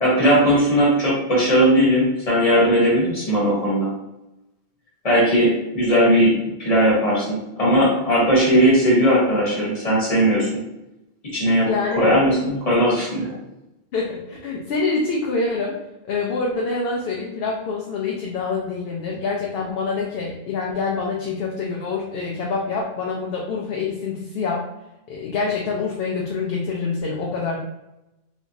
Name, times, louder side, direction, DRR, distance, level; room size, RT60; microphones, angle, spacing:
voice 1, 0.0-3.9 5.0-10.5 11.3-11.7 11.9-13.3, equal, 35° left, -5 dB, 1.2 m, -18 dB
voice 2, 11.6-12.4 13.9-15.8 16.0-24.7 25.1-27.6, left 4 dB, 70° left, -2 dB, 0.8 m, -26 dB
3.3 x 2.9 x 2.6 m, 0.92 s
omnidirectional pair, 1.1 m